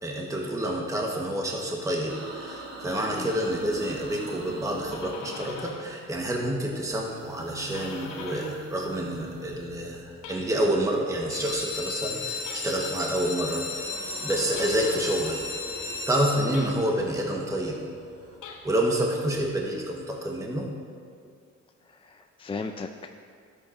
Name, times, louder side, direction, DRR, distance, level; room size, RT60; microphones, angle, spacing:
voice 1, 0.0-13.9 14.2-15.6 16.1-17.8 18.6-20.7, right 1 dB, 10° right, -1 dB, 1.1 m, -28 dB
sound 1, 2.1-6.0 6.8-10.5 11.9-13.0 13.4-18.4, right 2 dB, 55° right, 1.8 m, -44 dB
sound 2, 4.9-6.0 6.3-8.7 9.1-10.9 12.4-13.1 14.5-15.2 16.5-17.2 18.3-19.1, left 5 dB, 75° left, 1.1 m, -44 dB
sound 3, 11.2-16.9 17.5-18.0 18.4-18.5 18.8-18.9 19.3-19.4, left 4 dB, 55° left, 1.1 m, -34 dB
voice 2, 21.9-23.1, left 4 dB, 20° left, 5 dB, 0.4 m, -36 dB
13.0 x 8.1 x 2.5 m, 2.2 s
cardioid pair, 90°, 30 cm